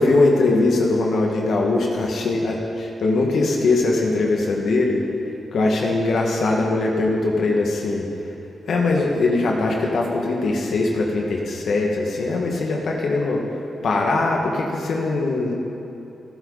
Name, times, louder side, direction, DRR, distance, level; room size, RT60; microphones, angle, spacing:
voice 1, 0.0-5.0 5.5-8.0 8.7-13.4 13.8-15.5, left 2 dB, 70° left, -1 dB, 2.1 m, -21 dB
28.5 x 10.5 x 4.2 m, 2.8 s
cardioid pair, 90°, 0 cm